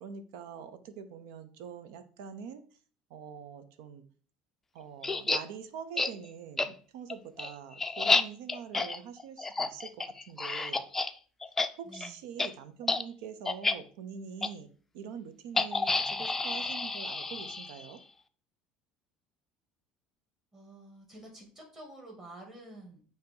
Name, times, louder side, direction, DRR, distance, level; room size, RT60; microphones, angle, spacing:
voice 1, 0.0-2.6 3.1-4.0 4.7-9.9 10.3-10.9 11.7-14.7 14.9-18.0, right 7 dB, 80° right, 11 dB, 0.7 m, -44 dB
sound 1, 5.0-5.4 6.0-6.1 6.6-6.7 7.1-11.1 11.4-11.7 11.9-12.1 12.4-12.5 12.8-13.0 13.5-13.7 14.4-14.5 15.6-17.9, left 3 dB, 15° left, 0.4 m, -30 dB
voice 2, 11.8-12.2 20.5-23.0, right 1 dB, 20° right, -1 dB, 2.4 m, -49 dB
8.5 x 2.9 x 3.8 m, 0.42 s
supercardioid pair, 115°, 2 cm